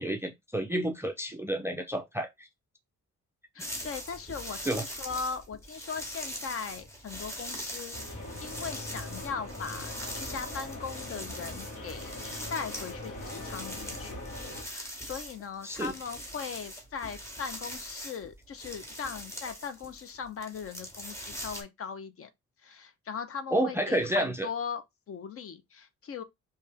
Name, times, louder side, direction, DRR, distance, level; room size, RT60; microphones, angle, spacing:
voice 1, 0.0-2.5 4.7-4.8 15.6-15.9 23.5-24.5, right 1 dB, 10° right, 0.3 m, -30 dB
voice 2, 3.5-12.2 12.5-14.2 14.6-22.3 22.6-26.2, left 6 dB, 50° left, 0.5 m, -39 dB
sound 1, 3.6-21.6, equal, 10° left, 0.9 m, -42 dB
sound 2, 7.9-14.6, left 1 dB, 75° left, 1.5 m, -41 dB
3.2 x 2.7 x 3.3 m
wide cardioid pair, 175°, 30 cm